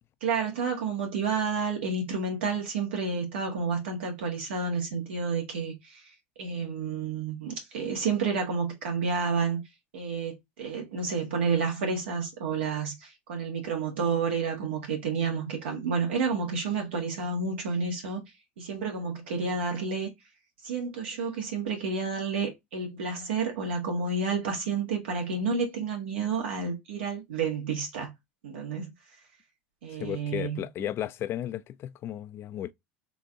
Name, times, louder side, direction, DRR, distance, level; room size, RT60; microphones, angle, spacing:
voice 1, 0.2-6.1 6.4-9.6 9.9-18.2 18.6-20.1 20.6-28.1 28.4-28.9 29.8-30.6, right 5 dB, 85° right, 1.6 m, -30 dB
voice 2, 29.9-32.7, left 11 dB, 45° left, 0.3 m, -34 dB
3.9 x 2.7 x 3.6 m
hypercardioid pair, 90°, 6 cm